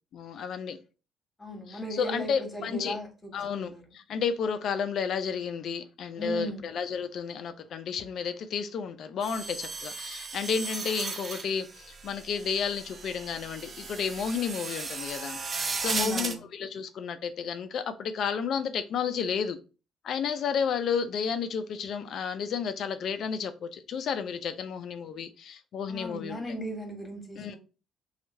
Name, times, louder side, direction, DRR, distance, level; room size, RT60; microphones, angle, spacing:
voice 1, 0.1-0.8 1.7-3.0 3.3-19.6 20.0-26.4 27.4-27.6, left 6 dB, 60° left, 0.5 m, -32 dB
voice 2, 1.4-3.8 6.2-6.6 15.9-16.4 25.9-27.6, right 1 dB, 25° left, 1.5 m, -37 dB
sound 1, 9.2-16.4, right 4 dB, 45° right, 0.6 m, -36 dB
3.0 x 2.4 x 4.3 m
hypercardioid pair, 50°, 0 cm